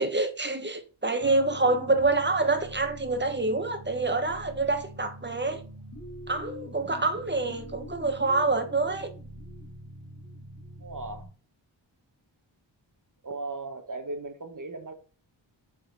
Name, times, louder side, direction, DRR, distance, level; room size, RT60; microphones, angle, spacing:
voice 1, 0.0-5.6 6.3-9.1, right 3 dB, 25° right, 1.2 m, -26 dB
sound 1, 1.2-11.3, equal, 35° left, 2.1 m, -44 dB
voice 2, 10.8-11.3 13.2-14.9, right 3 dB, 40° right, 1.1 m, -37 dB
7.1 x 4.1 x 3.9 m
wide cardioid pair, 90°, 47 cm